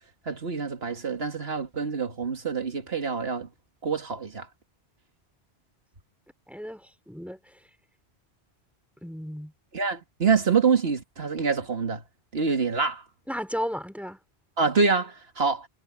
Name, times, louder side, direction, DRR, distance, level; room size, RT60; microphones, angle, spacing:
voice 1, 0.3-3.5 3.8-4.5 9.7-12.0 12.3-13.0 14.6-15.7, right 5 dB, 70° right, 2.3 m, -26 dB
voice 2, 6.5-6.8 7.1-7.4 9.0-9.5 13.3-14.2, equal, ahead, 3.7 m, -33 dB
omnidirectional pair, 1.1 m